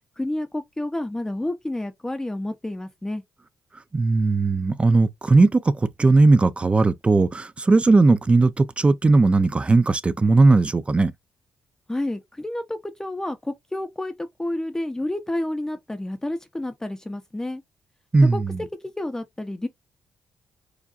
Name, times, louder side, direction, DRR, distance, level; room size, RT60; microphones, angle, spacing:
voice 1, 0.2-3.2 11.9-17.6 18.2-18.4 18.8-19.7, left 1 dB, 15° left, 0.8 m, -30 dB
voice 2, 3.9-11.1 18.1-18.6, right 3 dB, 25° right, 0.5 m, -18 dB
4.9 x 2.5 x 2.4 m
cardioid pair, 65°, 4 cm